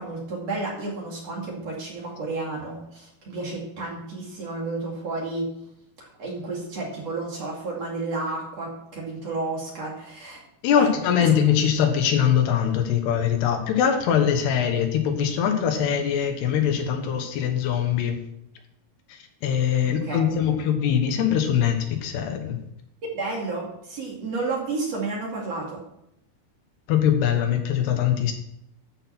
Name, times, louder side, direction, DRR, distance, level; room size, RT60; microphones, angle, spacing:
voice 1, 0.0-5.5 6.0-10.4 10.8-10.9 19.8-20.4 23.0-25.8, right 3 dB, 45° right, -2 dB, 3.2 m, -31 dB
voice 2, 10.6-18.2 19.4-22.6 26.9-28.3, left 8 dB, 80° left, 5 dB, 3.4 m, -22 dB
13.5 x 6.7 x 6.0 m, 0.78 s
omnidirectional pair, 4.7 m